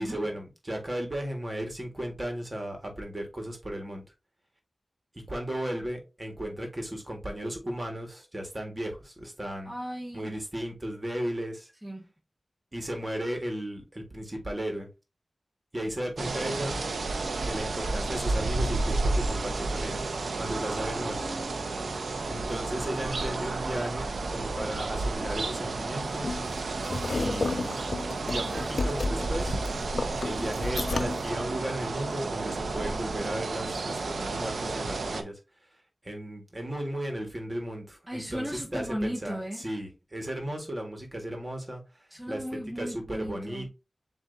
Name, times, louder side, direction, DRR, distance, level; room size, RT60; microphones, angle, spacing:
voice 1, 0.0-4.0 5.3-9.7 10.1-11.7 12.7-14.9 15.7-16.7 17.4-21.2 22.3-26.4 27.1-27.7 28.2-29.6 30.2-35.4 36.0-42.4 42.7-43.7, right 1 dB, 30° right, 1.6 m, -35 dB
voice 2, 9.6-10.3 11.8-12.1 20.9-21.5 38.1-39.6 42.1-43.7, equal, 5° right, 1.1 m, -36 dB
sound 1, 16.2-35.2, right 3 dB, 90° right, 0.5 m, -31 dB
sound 2, 26.1-31.3, left 3 dB, 70° left, 0.4 m, -32 dB
7.2 x 2.7 x 2.6 m
wide cardioid pair, 75°, 0 cm